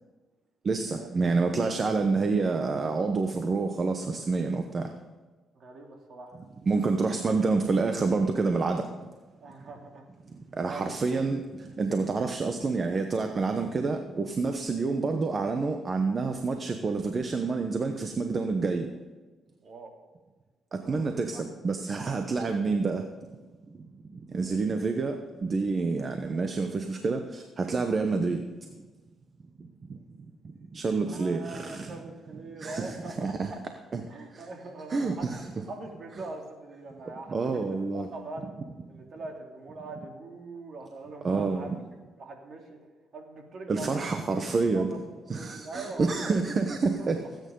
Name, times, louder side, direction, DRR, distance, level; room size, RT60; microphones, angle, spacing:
voice 1, 0.6-4.9 6.7-8.8 10.6-11.4 11.8-18.9 20.9-23.0 24.3-28.4 30.7-32.0 32.6-33.0 33.2-33.5 33.9-34.0 34.9-35.4 37.3-38.1 41.2-41.7 43.7-44.9 45.3-47.2, right 4 dB, 40° right, 6 dB, 1.0 m, -28 dB
voice 2, 5.5-6.4 9.4-10.0 10.6-11.0 19.6-19.9 20.8-21.1 21.3-21.4 24.4-24.6 31.1-33.6 34.1-35.3 35.7-37.4 37.7-38.6 38.9-41.8 42.2-42.8 43.1-44.1 44.7-45.0 45.3-46.4 47.0-47.3, right 3 dB, 55° right, 2 dB, 2.8 m, -42 dB
19.0 x 9.1 x 3.9 m, 1.3 s
cardioid pair, 90°, 0 cm